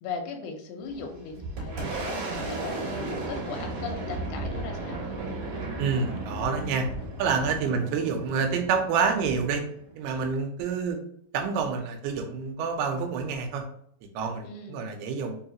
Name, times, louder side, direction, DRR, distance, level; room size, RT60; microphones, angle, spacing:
voice 1, 0.0-5.0 7.6-7.9 14.4-14.9, left 4 dB, 80° left, 3 dB, 2.5 m, -38 dB
Boom, 0.9-10.3, right 2 dB, 55° right, 2.5 m, -35 dB
voice 2, 5.8-6.9 7.2-9.6 10.0-11.0 11.3-13.6 14.2-15.4, right 5 dB, 85° right, 4 dB, 2.7 m, -28 dB
5.8 x 2.4 x 2.8 m, 0.66 s
omnidirectional pair, 4.5 m